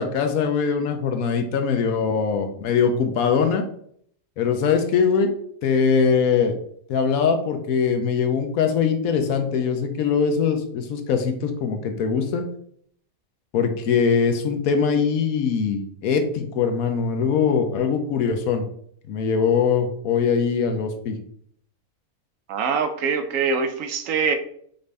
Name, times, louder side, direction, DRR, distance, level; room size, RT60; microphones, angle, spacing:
voice 1, 0.0-3.6 4.4-5.3 5.6-6.6 6.9-12.4 13.5-18.6 19.1-21.2, left 6 dB, 80° left, 6 dB, 1.1 m, -22 dB
voice 2, 22.5-24.4, right 5 dB, 70° right, 7 dB, 0.9 m, -23 dB
5.3 x 2.6 x 3.3 m, 0.62 s
omnidirectional pair, 1.5 m